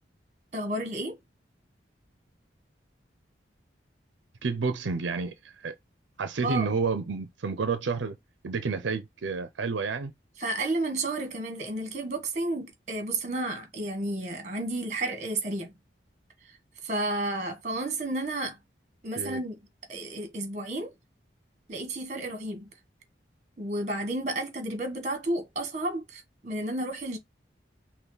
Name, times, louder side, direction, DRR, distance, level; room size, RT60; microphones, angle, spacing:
voice 1, 0.5-1.2 6.4-6.7 10.4-15.7 16.8-18.6 19.0-19.6 19.9-20.9 21.7-22.7 23.6-27.2, right 2 dB, 40° right, 1.4 m, -32 dB
voice 2, 4.4-5.8 6.2-8.2 8.4-10.1 19.2-19.4, right 4 dB, 85° right, 0.5 m, -30 dB
5.7 x 2.2 x 3.9 m
head